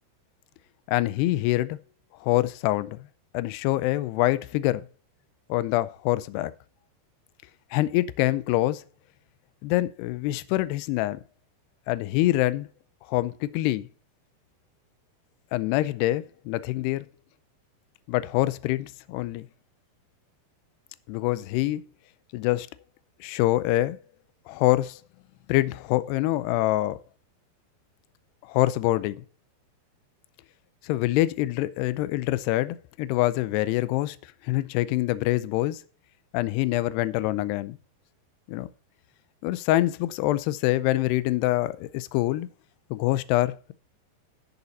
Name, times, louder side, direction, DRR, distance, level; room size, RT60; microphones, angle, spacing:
voice 1, 0.9-1.8 2.2-3.0 3.3-4.9 5.5-6.5 7.7-8.8 9.6-11.2 11.9-12.7 13.1-13.9 15.5-17.1 18.1-19.5 21.1-21.8 22.3-22.7 23.2-24.0 24.5-25.0 25.5-27.0 28.4-29.2 30.8-34.2 34.4-35.8 36.3-37.8 38.5-38.7 39.4-42.5 42.9-43.7, left 16 dB, 80° left, 2.5 m, -25 dB
12.5 x 7.0 x 4.1 m
omnidirectional pair, 5.3 m